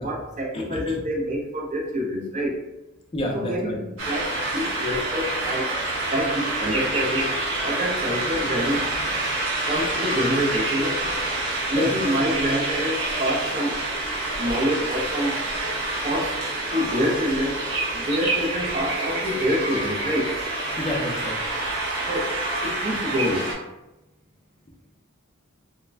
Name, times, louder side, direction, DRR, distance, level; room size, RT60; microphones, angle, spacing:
voice 1, 0.0-2.6 3.3-5.7 6.1-8.8 9.7-11.0 11.7-13.8 14.4-15.4 15.9-16.4 16.7-17.6 17.9-20.4 22.1-22.4 22.6-23.6, equal, 35° right, -1 dB, 0.5 m, -26 dB
voice 2, 0.5-1.0 3.1-3.8 11.7-11.9 20.8-21.4, left 1 dB, 25° left, -1 dB, 0.4 m, -29 dB
sound 1, 4.0-23.5, right 2 dB, 75° right, 0.8 m, -27 dB
Gunshot gunfire, 5.4-5.8 8.7-9.2, equal, 5° right, 0.9 m, -38 dB
2.4 x 2.1 x 3.2 m, 0.97 s
head